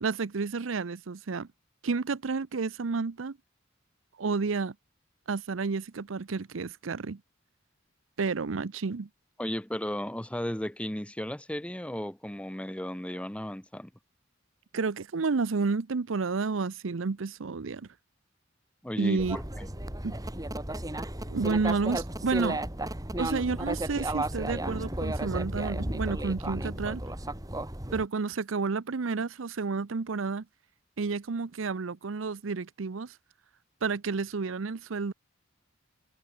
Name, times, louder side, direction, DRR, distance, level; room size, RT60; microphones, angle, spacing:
voice 1, 0.0-1.5 1.8-3.4 4.2-4.7 5.3-7.2 8.2-9.1 14.7-17.9 19.0-19.4 20.0-20.2 21.3-22.6 23.2-27.0 27.9-30.5 31.0-33.1 33.8-35.1, right 4 dB, 80° right, 0.7 m, -30 dB
voice 2, 9.4-13.9 18.8-19.7, equal, 5° left, 1.1 m, -35 dB
sound 1, 19.2-28.1, right 1 dB, 20° right, 2.6 m, -34 dB
head